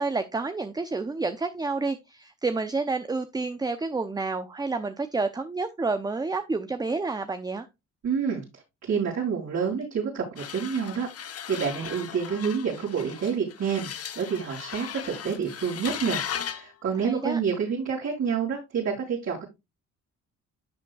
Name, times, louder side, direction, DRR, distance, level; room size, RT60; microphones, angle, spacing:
voice 1, 0.0-7.7 17.0-17.4, right 3 dB, 15° right, 0.6 m, -29 dB
voice 2, 8.0-13.9 14.1-19.4, right 6 dB, 60° right, 5.1 m, -28 dB
sound 1, 10.4-16.7, left 9 dB, 50° left, 1.0 m, -37 dB
11.5 x 7.3 x 2.3 m
cardioid pair, 90°, 30 cm